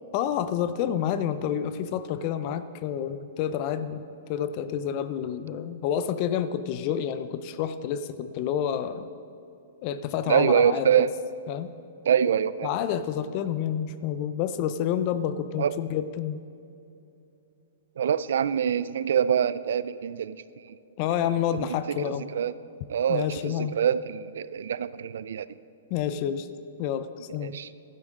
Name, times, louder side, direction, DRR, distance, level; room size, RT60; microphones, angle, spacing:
voice 1, 0.1-4.0 4.3-9.1 9.8-11.1 11.5-11.7 12.6-16.4 21.0-22.3 23.1-23.8 25.9-26.5 26.8-27.6, left 9 dB, 40° left, 12 dB, 0.4 m, -29 dB
voice 2, 10.3-11.1 12.1-12.7 15.6-15.7 18.0-20.4 21.9-22.0 22.3-22.5 22.9-25.5 27.4-27.7, right 8 dB, 75° right, 16 dB, 0.4 m, -25 dB
12.0 x 10.5 x 3.6 m, 2.8 s
hypercardioid pair, 145°, 0 cm